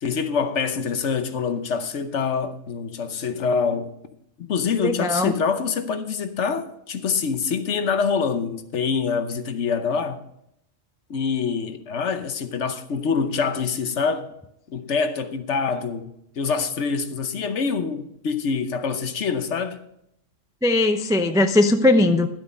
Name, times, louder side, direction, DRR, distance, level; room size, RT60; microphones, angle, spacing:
voice 1, 0.0-3.9 4.4-10.2 11.1-14.3 14.7-19.8, left 5 dB, 65° left, 1.2 m, -25 dB
voice 2, 4.7-5.3 20.6-22.3, left 2 dB, 5° right, 0.3 m, -19 dB
12.0 x 7.8 x 5.3 m
omnidirectional pair, 1.3 m